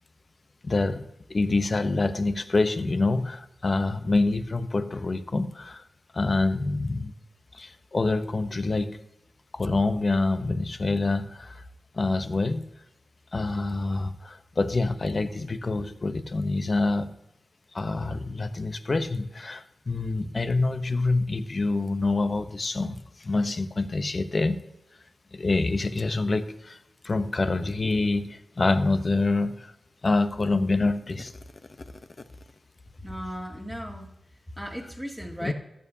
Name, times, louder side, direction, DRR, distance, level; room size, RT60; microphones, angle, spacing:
voice 1, 0.6-1.0 1.3-5.8 6.1-7.1 7.5-9.0 9.5-11.6 11.9-12.6 13.3-17.1 17.7-24.6 25.3-26.8 27.0-29.7 30.0-31.3 35.4-35.5, left 3 dB, 50° left, 11 dB, 0.8 m, -26 dB
voice 2, 33.0-34.1 34.6-35.5, equal, 5° left, 0 dB, 2.3 m, -36 dB
14.0 x 8.7 x 2.7 m, 0.85 s
cardioid pair, 45°, 0 cm